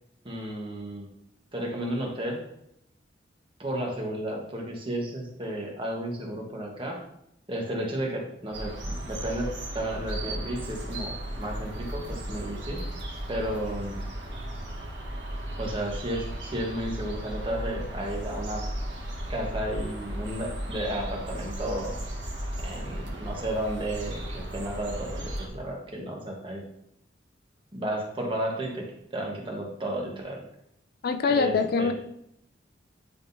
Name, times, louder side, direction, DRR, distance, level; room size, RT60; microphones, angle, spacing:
voice 1, 0.2-1.1 1.5-2.4 3.6-7.0 7.5-9.5 9.7-12.8 13.3-14.0 15.6-18.6 19.3-22.0 22.6-26.6 27.7-30.4 31.3-31.9, right 1 dB, 30° right, -1 dB, 1.3 m, -33 dB
sound 1, 8.5-25.5, right 1 dB, 70° right, 1.5 m, -35 dB
voice 2, 31.0-31.9, left 4 dB, 55° left, 8 dB, 0.4 m, -24 dB
10.0 x 3.7 x 2.7 m, 0.78 s
head